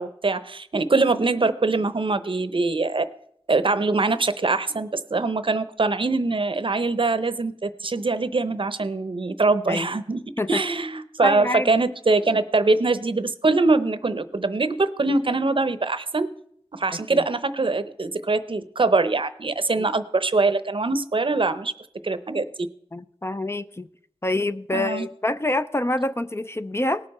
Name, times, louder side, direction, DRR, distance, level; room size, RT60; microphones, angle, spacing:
voice 1, 0.0-3.1 3.5-10.2 10.5-16.3 16.7-21.7 22.0-22.4 24.7-25.1, right 3 dB, 55° right, 13 dB, 0.7 m, -23 dB
voice 2, 11.2-11.7 16.9-17.2 22.9-23.9 24.2-27.0, left 2 dB, 25° left, 11 dB, 0.4 m, -26 dB
18.5 x 6.7 x 4.2 m, 0.68 s
wide cardioid pair, 80°, 11 cm